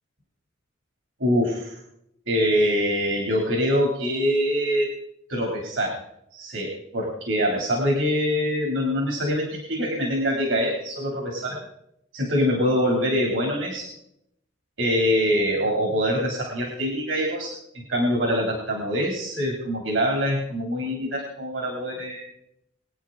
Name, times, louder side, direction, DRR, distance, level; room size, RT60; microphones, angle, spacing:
voice 1, 1.2-1.8 2.3-4.9 5.3-6.0 6.3-11.6 12.1-13.9 14.8-22.3, equal, 70° right, 0 dB, 2.9 m, -24 dB
22.0 x 9.4 x 3.8 m, 0.78 s
head